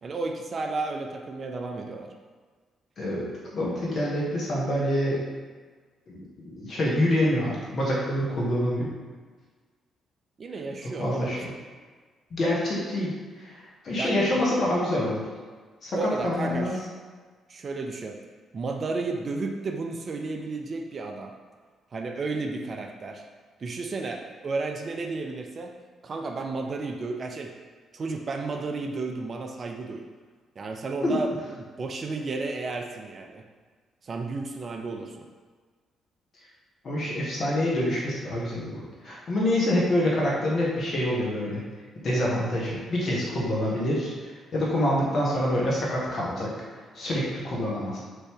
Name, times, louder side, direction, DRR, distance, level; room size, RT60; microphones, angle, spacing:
voice 1, 0.0-2.1 10.4-11.5 14.0-14.4 15.9-16.9 17.5-18.2 18.5-21.3 21.9-23.2 23.6-25.7 26.0-27.5 27.9-30.0 30.6-33.4 34.0-35.3, right 3 dB, 45° right, 3 dB, 0.4 m, -33 dB
voice 2, 3.5-5.2 6.1-8.9 11.0-11.5 12.3-13.1 13.4-15.2 15.8-16.7 31.0-31.1 36.8-41.6 42.0-46.5 46.9-48.0, left 1 dB, 50° left, -4 dB, 1.1 m, -26 dB
3.1 x 2.6 x 3.5 m, 1.5 s
figure-of-eight pair, 40°, 0 cm